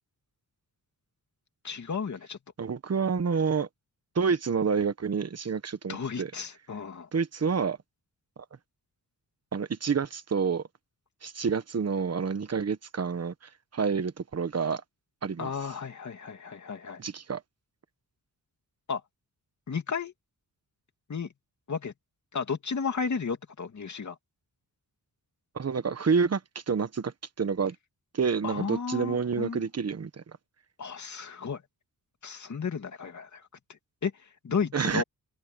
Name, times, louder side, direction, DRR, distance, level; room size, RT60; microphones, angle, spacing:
voice 1, 1.6-2.4 5.9-7.1 15.4-17.0 18.9-19.0 19.7-20.1 21.1-21.3 21.7-21.9 22.3-24.2 28.4-29.6 30.8-31.6 32.2-33.5 34.0-34.1 34.4-35.0, left 5 dB, 50° left, 2.7 m, -33 dB
voice 2, 2.6-3.7 4.1-6.3 7.1-7.8 9.5-10.6 11.2-13.3 13.7-14.8 15.2-15.5 17.0-17.4 25.5-26.4 26.7-27.7 28.1-30.2 34.7-35.0, right 5 dB, 45° right, 1.2 m, -28 dB
wide cardioid pair, 115°, 37 cm